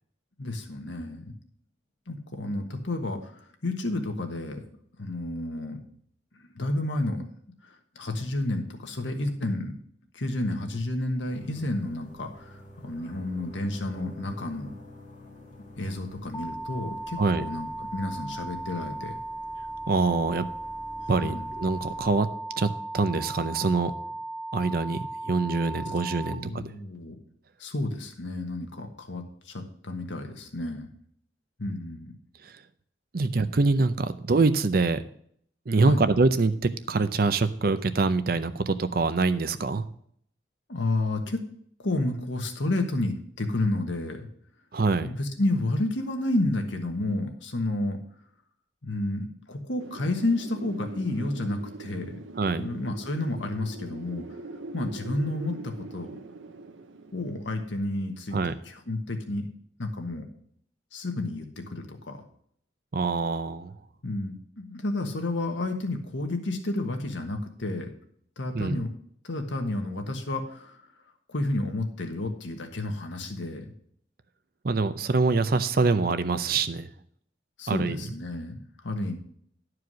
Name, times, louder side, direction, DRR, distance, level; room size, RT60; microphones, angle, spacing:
voice 1, 0.4-1.3 2.1-4.6 5.0-5.8 6.5-7.2 7.6-9.7 10.1-14.7 15.8-19.2 21.2-21.5 26.3-27.2 27.6-30.9 31.6-32.1 35.8-36.0 40.7-41.4 41.8-44.3 44.9-48.0 48.8-52.2 52.5-54.2 54.7-56.2 57.1-59.5 59.8-60.3 60.9-62.2 64.0-67.9 68.4-68.9 69.2-70.8 71.3-73.7 77.6-79.2, left 2 dB, 75° left, 4 dB, 1.4 m, -31 dB
sound 1, 11.3-22.2, left 1 dB, 40° left, 1.7 m, -49 dB
sound 2, 16.3-26.3, right 2 dB, 15° left, 0.4 m, -37 dB
voice 2, 19.9-20.4 21.1-22.3 22.6-22.7 22.9-23.9 24.5-26.6 32.4-32.6 33.1-35.0 35.7-39.9 44.7-45.1 52.4-52.7 58.3-58.5 62.9-63.7 68.5-68.8 74.6-76.9 77.7-78.0, right 3 dB, 50° right, 12 dB, 0.6 m, -25 dB
Wind, 49.8-58.5, right 3 dB, 85° right, 0.8 m, -43 dB
11.0 x 4.8 x 6.2 m, 0.64 s
head